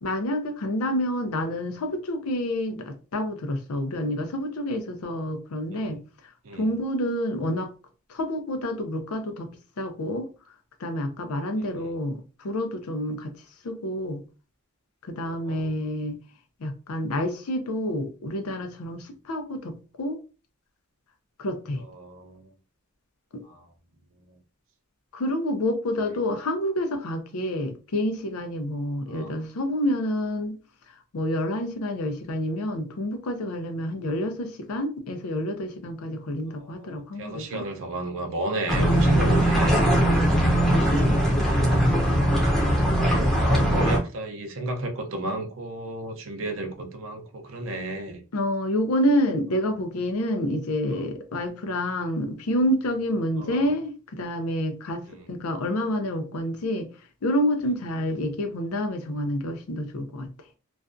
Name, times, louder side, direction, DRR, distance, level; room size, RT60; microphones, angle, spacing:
voice 1, 0.0-6.0 6.5-7.7 8.1-10.3 10.8-13.3 13.6-14.2 15.0-16.2 16.6-20.2 21.4-21.8 23.3-23.4 25.1-30.6 31.1-37.7 40.0-41.2 43.1-43.2 48.3-56.9 57.2-60.3, left 1 dB, 85° left, 0.5 m, -28 dB
voice 2, 11.6-11.9 15.2-15.7 21.8-22.5 23.4-23.7 24.2-24.4 26.0-26.2 29.1-29.3 36.6-39.9 41.2-41.4 42.9-48.2 50.9-51.0 53.4-53.7 55.1-55.2, right 2 dB, 65° right, 0.5 m, -33 dB
sound 1, 38.7-44.0, equal, ahead, 0.6 m, -20 dB
2.4 x 2.2 x 2.5 m
head